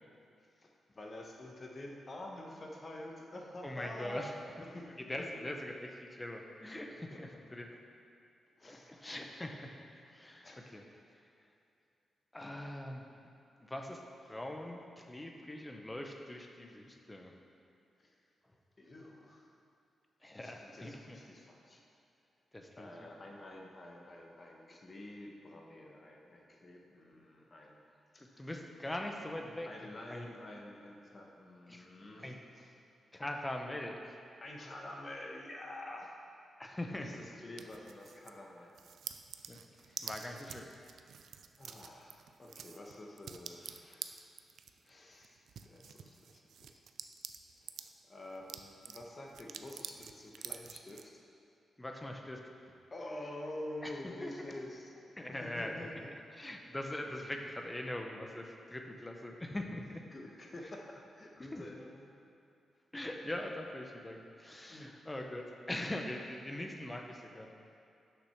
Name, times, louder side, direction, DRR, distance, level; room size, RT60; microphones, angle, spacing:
voice 1, 0.6-4.9 5.2-5.5 6.9-7.4 8.6-9.1 10.4-10.8 18.0-18.1 18.8-19.5 20.3-21.8 22.8-27.8 28.1-28.5 29.6-32.7 34.4-36.1 36.9-38.8 39.7-40.4 41.6-44.2 44.8-46.8 47.8-51.2 52.9-54.9 55.3-55.9 60.1-62.1 64.7-64.9, left 1 dB, 30° left, 0 dB, 1.1 m, -48 dB
voice 2, 3.6-4.3 5.0-7.8 8.6-9.7 10.1-10.8 12.3-13.0 13.6-17.3 20.2-21.2 22.5-22.9 28.2-29.7 30.1-30.3 31.7-31.9 32.2-32.4 33.1-34.2 36.6-37.2 39.5-39.6 40.0-40.7 51.8-52.4 53.8-54.3 55.2-55.7 56.3-60.0 61.5-61.6 62.9-67.5, left 1 dB, 15° left, 3 dB, 0.7 m, -42 dB
sound 1, 37.6-38.4 38.7-47.9 48.3-51.0, right 7 dB, 75° right, 0.3 m, -48 dB
6.6 x 6.0 x 5.8 m, 2.6 s
cardioid pair, 115°, 0 cm